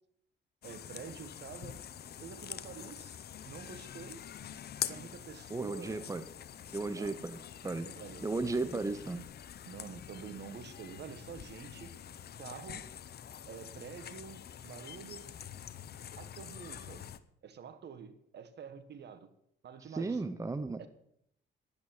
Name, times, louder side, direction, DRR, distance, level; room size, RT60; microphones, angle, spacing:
sound 1, 0.6-17.2, left 9 dB, 55° left, 0.8 m, -46 dB
voice 1, 0.6-1.8 2.2-3.2 3.4-4.2 4.8-6.1 6.9-7.2 7.8-8.9 9.7-11.9 12.4-12.9 13.5-15.3 16.1-17.1 17.4-19.3 19.6-20.2 20.8-20.9, right 6 dB, 60° right, 11 dB, 1.4 m, -48 dB
voice 2, 5.5-6.2 6.7-7.9 8.2-9.2 19.9-20.8, right 3 dB, 15° right, 11 dB, 0.8 m, -35 dB
10.5 x 9.2 x 7.3 m, 0.72 s
cardioid pair, 90°, 20 cm